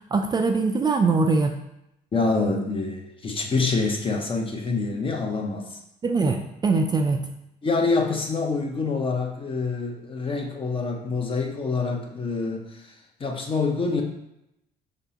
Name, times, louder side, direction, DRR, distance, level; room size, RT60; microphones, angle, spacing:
voice 1, 0.1-1.5 6.0-7.2, right 4 dB, 25° right, 4 dB, 0.3 m, -22 dB
voice 2, 2.1-5.8 7.6-12.9 13.2-14.0, left 3 dB, 30° left, 3 dB, 0.8 m, -26 dB
5.0 x 3.5 x 2.8 m, 0.83 s
cardioid pair, 110°, 17 cm